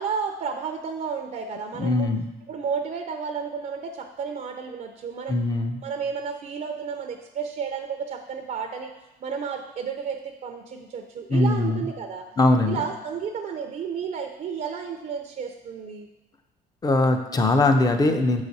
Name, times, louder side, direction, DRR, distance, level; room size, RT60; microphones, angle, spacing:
voice 1, 0.0-2.1 2.5-8.9 9.2-12.2 12.6-16.1, right 6 dB, 50° right, 4 dB, 0.6 m, -32 dB
voice 2, 1.8-2.3 5.3-5.8 11.3-11.9 12.4-12.8 16.8-18.4, left 2 dB, 20° left, 7 dB, 0.6 m, -21 dB
6.3 x 4.9 x 4.1 m, 1.0 s
cardioid pair, 110°, 17 cm